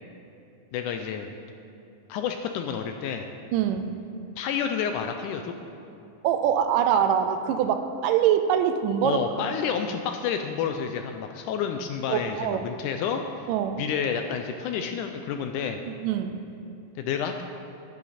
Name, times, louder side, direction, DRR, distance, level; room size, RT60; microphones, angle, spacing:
voice 1, 0.7-1.3 2.1-3.3 4.4-5.5 9.0-13.2 13.8-15.8 17.0-17.4, left 7 dB, 80° left, 5 dB, 1.9 m, -29 dB
voice 2, 3.5-3.9 6.2-9.2 12.1-12.7 13.5-13.8 15.9-16.4, right 9 dB, 80° right, 9 dB, 2.1 m, -24 dB
11.5 x 10.5 x 4.2 m, 2.7 s
omnidirectional pair, 3.9 m